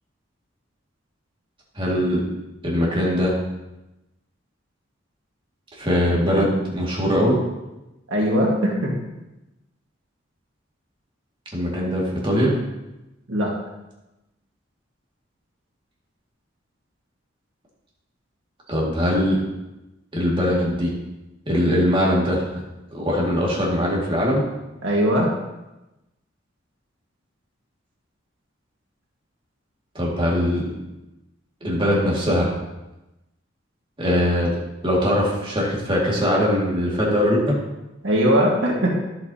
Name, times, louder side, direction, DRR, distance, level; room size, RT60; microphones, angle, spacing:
voice 1, 1.8-2.2 2.6-3.3 5.8-7.4 11.5-12.6 18.7-19.4 20.1-20.9 21.5-22.6 22.9-24.4 29.9-30.7 31.6-32.5 34.0-37.5, equal, 25° right, -4 dB, 2.1 m, -21 dB
voice 2, 8.1-8.9 13.3-13.5 24.8-25.3 38.0-38.9, equal, 75° right, -2 dB, 1.7 m, -20 dB
11.0 x 7.9 x 2.8 m, 0.99 s
head